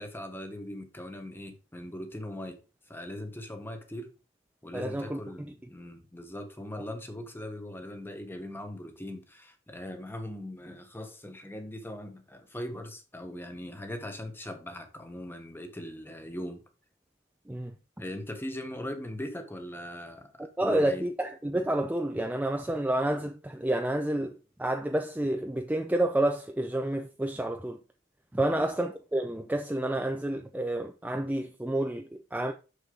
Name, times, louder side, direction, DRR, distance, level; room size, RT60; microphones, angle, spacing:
voice 1, 0.0-2.6 2.9-4.1 4.6-16.6 18.0-20.3 20.6-21.0 28.5-28.7, left 1 dB, 10° left, 1.1 m, -40 dB
voice 2, 4.7-5.2 17.5-17.8 20.4-27.8 28.3-32.5, right 1 dB, 10° right, 0.5 m, -29 dB
6.6 x 6.3 x 3.8 m
head